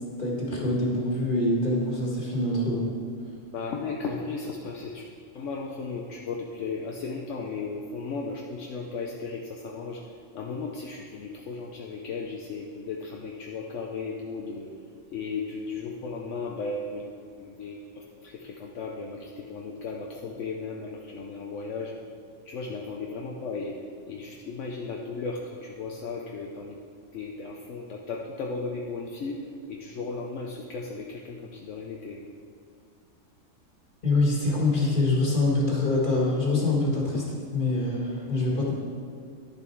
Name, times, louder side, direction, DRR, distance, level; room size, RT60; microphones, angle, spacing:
voice 1, 0.2-2.9 34.0-37.2 37.5-38.7, left 2 dB, 40° left, -3 dB, 2.0 m, -25 dB
voice 2, 3.5-5.1 5.3-10.0 10.3-14.7 15.1-17.1 17.4-21.9 22.4-23.8 24.1-26.8 27.1-29.4 29.7-32.3 37.1-37.3, left 4 dB, 70° left, 0 dB, 1.0 m, -35 dB
11.5 x 6.9 x 4.6 m, 2.4 s
omnidirectional pair, 1.3 m